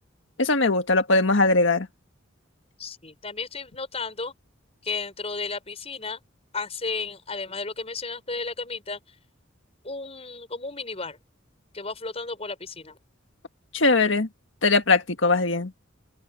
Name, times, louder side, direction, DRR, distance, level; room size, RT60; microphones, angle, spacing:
voice 1, 0.4-1.9 13.7-14.3 14.6-15.7, left 3 dB, 70° left, 1.7 m, -20 dB
voice 2, 2.8-4.3 4.8-6.2 6.5-9.0 9.8-11.2 11.7-13.0, left 4 dB, 30° left, 6.0 m, -33 dB
open air
head